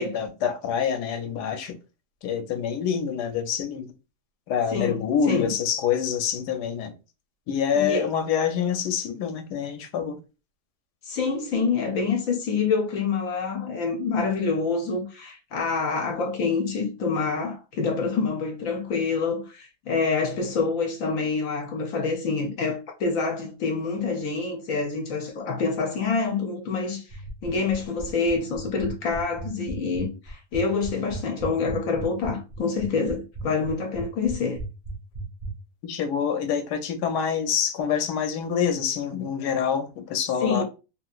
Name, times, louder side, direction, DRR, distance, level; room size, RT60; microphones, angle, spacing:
voice 1, 0.0-1.8 2.2-3.9 4.5-6.9 7.5-10.2 35.8-40.6, left 7 dB, 85° left, 1.2 m, -26 dB
voice 2, 4.7-5.5 7.7-8.1 11.0-27.0 27.4-34.6 40.4-40.6, left 4 dB, 65° left, 0.9 m, -26 dB
sound 1, 27.1-35.5, right 2 dB, 80° right, 0.3 m, -35 dB
3.0 x 2.8 x 2.4 m
omnidirectional pair, 1.8 m